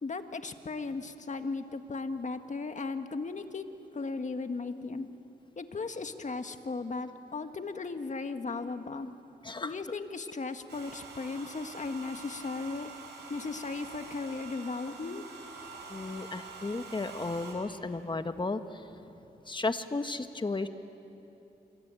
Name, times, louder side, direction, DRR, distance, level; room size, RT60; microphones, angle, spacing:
voice 1, 0.0-3.7 3.9-5.1 5.6-9.1 9.6-12.9 13.3-15.2 19.1-19.2, left 4 dB, 45° left, 8 dB, 1.6 m, -36 dB
voice 2, 4.7-5.1 8.5-8.7 9.0-9.1 9.4-9.8 15.0-15.2 15.9-18.8 19.5-20.7, left 3 dB, 25° left, 9 dB, 1.4 m, -35 dB
Domestic sounds home sounds, 10.7-17.5, right 4 dB, 85° right, 5.5 m, -46 dB
27.0 x 22.0 x 9.1 m, 2.9 s
cardioid pair, 70°, 18 cm